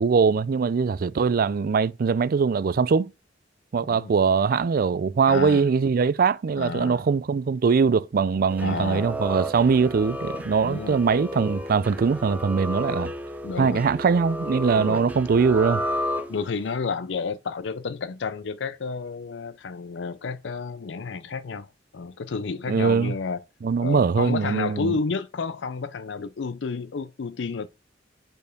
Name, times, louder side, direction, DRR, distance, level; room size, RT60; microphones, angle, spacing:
voice 1, 0.0-3.1 3.7-13.1 13.6-15.8 22.7-23.1 23.6-24.9, right 5 dB, 50° right, 0.4 m, -22 dB
voice 2, 3.8-4.1 5.3-5.6 6.6-7.0 8.6-9.1 10.6-11.0 13.4-13.9 14.8-15.0 16.3-21.7 21.9-23.4 23.8-27.7, left 4 dB, 75° left, 0.5 m, -31 dB
sound 1, 8.5-16.7, equal, 10° right, 0.6 m, -32 dB
5.3 x 4.5 x 6.0 m
head